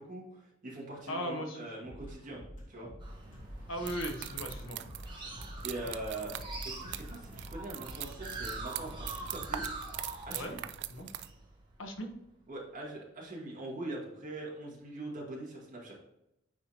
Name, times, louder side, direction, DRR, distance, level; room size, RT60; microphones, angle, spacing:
voice 1, 0.1-2.4 2.7-2.9 5.6-6.3 6.6-9.6 10.3-10.6 12.5-16.0, right 2 dB, 40° right, -4 dB, 2.1 m, -42 dB
voice 2, 1.1-1.6 3.7-4.8 10.3-10.6 10.9-11.1 11.8-12.1, equal, 75° left, 3 dB, 1.1 m, -37 dB
sound 1, 1.8-9.7, equal, 40° left, 2.0 m, -48 dB
sound 2, 3.0-12.1, right 2 dB, 25° right, 1.4 m, -44 dB
sound 3, 3.9-11.3, right 12 dB, 60° right, 0.3 m, -43 dB
9.2 x 3.7 x 2.9 m, 0.83 s
head